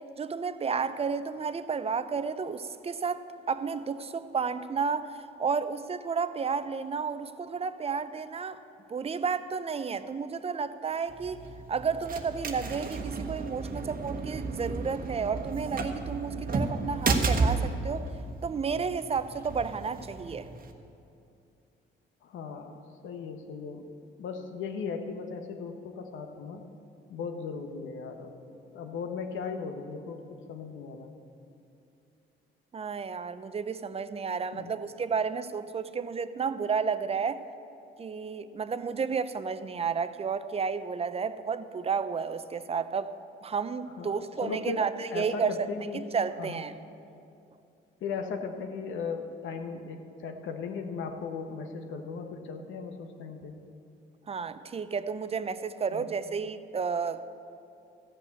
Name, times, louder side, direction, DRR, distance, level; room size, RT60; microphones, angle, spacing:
voice 1, 0.0-8.6 8.9-11.4 11.7-18.1 18.4-20.5 32.7-37.4 38.0-43.1 43.4-46.7 54.3-57.3, right 5 dB, 30° right, 13 dB, 0.5 m, -32 dB
sound 1, 11.1-20.7, right 4 dB, 45° right, 1.1 m, -33 dB
voice 2, 22.2-23.9 24.2-26.6 27.1-28.3 28.7-31.1 34.5-34.7 44.0-46.0 46.4-46.6 48.0-53.5 55.9-56.1, left 5 dB, 80° left, 5 dB, 1.1 m, -37 dB
14.0 x 5.6 x 8.2 m, 2.6 s
cardioid pair, 90°, 20 cm